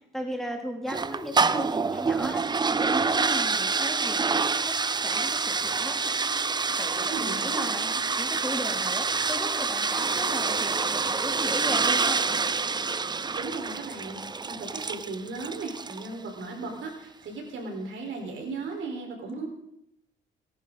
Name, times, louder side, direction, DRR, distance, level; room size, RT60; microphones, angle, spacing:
voice 1, 0.1-2.4 2.7-4.7 5.0-6.0 6.7-7.8 8.2-12.2, equal, ahead, 1 dB, 3.1 m, -36 dB
sound 1, 0.9-16.1, right 4 dB, 20° right, 0.5 m, -27 dB
voice 2, 7.1-8.0 13.3-19.5, right 3 dB, 75° right, 2 dB, 4.4 m, -36 dB
27.5 x 11.0 x 4.0 m, 0.76 s
cardioid pair, 90°, 20 cm